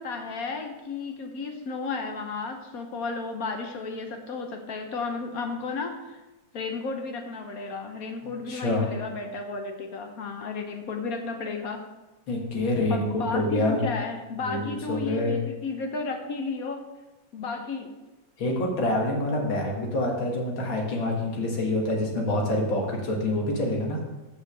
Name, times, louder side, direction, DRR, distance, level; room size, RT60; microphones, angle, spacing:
voice 1, 0.0-6.2 6.5-11.9 12.9-16.9 17.3-18.0, left 4 dB, 60° left, 4 dB, 1.0 m, -33 dB
voice 2, 8.5-8.8 12.3-13.8 14.5-15.4 18.4-24.0, left 1 dB, 90° left, 0 dB, 2.3 m, -26 dB
7.1 x 5.6 x 6.6 m, 1.1 s
omnidirectional pair, 2.1 m